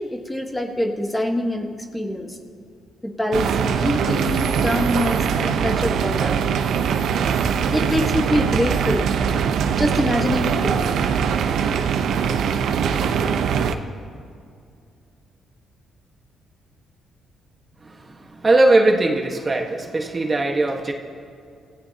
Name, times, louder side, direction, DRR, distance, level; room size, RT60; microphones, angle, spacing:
voice 1, 0.0-2.4 3.0-6.4 7.4-9.1 9.8-11.0, left 1 dB, 10° left, 3 dB, 1.5 m, -25 dB
sound 1, 3.3-13.7, right 7 dB, 75° right, 0.9 m, -22 dB
voice 2, 18.4-19.7 19.9-20.9, right 2 dB, 25° right, 2 dB, 1.5 m, -18 dB
28.0 x 15.5 x 2.9 m, 2.3 s
cardioid pair, 90°, 0 cm